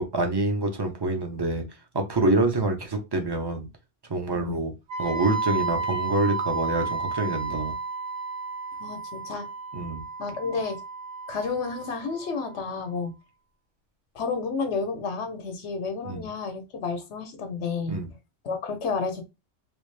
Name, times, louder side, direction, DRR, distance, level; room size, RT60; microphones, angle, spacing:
voice 1, 0.0-1.6 1.9-3.7 4.1-4.7 5.0-7.7 9.7-10.0 16.0-16.3 17.9-18.1, right 2 dB, 25° right, 0.7 m, -26 dB
Wind instrument woodwind instrument, 4.9-12.8, right 4 dB, 40° right, 1.0 m, -32 dB
voice 2, 8.8-9.5 10.2-10.8 11.3-13.1 14.1-18.0 18.4-19.2, left 4 dB, 65° left, 1.1 m, -31 dB
3.4 x 2.4 x 3.2 m
omnidirectional pair, 1.3 m